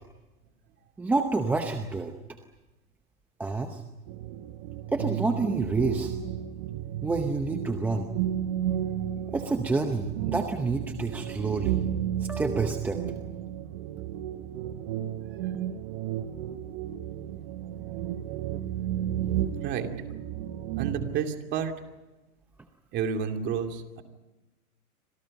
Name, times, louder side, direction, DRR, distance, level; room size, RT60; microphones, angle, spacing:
voice 1, 1.0-2.1 3.4-3.8 4.9-6.1 7.0-8.1 9.3-11.8 12.2-13.0, right 3 dB, 5° right, 5 dB, 0.7 m, -28 dB
sound 1, 4.1-21.2, right 11 dB, 40° right, 1.5 m, -33 dB
voice 2, 20.8-21.7 22.9-24.0, right 7 dB, 25° right, 5 dB, 2.6 m, -30 dB
29.5 x 26.5 x 5.4 m, 1.1 s
hypercardioid pair, 155°, 44 cm